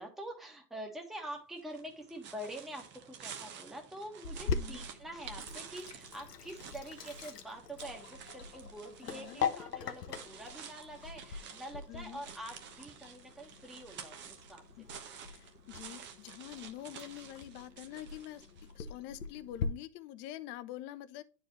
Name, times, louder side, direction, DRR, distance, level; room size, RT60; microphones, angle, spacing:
voice 1, 0.0-14.2 14.5-15.0 15.6-15.7, right 1 dB, ahead, 1.4 m, -46 dB
sound 1, 1.6-18.8, right 7 dB, 25° right, 0.9 m, -51 dB
Sink (filling or washing), 4.2-19.7, left 6 dB, 80° left, 1.0 m, -42 dB
voice 2, 4.5-4.8 9.0-9.4 11.9-12.2 14.8-14.9 15.2-18.4 18.7-21.2, left 13 dB, 25° left, 0.5 m, -46 dB
10.0 x 4.6 x 3.1 m
hypercardioid pair, 105°, 47 cm